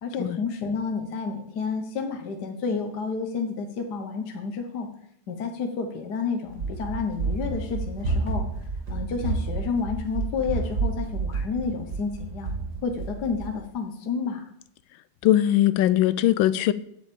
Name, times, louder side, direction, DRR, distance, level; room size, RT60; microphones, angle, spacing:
voice 1, 0.0-4.9 5.3-8.5 8.9-12.5 12.8-14.4, left 5 dB, 55° left, 1.5 m, -30 dB
Run, 6.5-13.5, right 3 dB, 50° right, 2.1 m, -30 dB
voice 2, 15.2-16.7, left 13 dB, 75° left, 1.3 m, -20 dB
7.9 x 7.4 x 8.5 m
omnidirectional pair, 2.3 m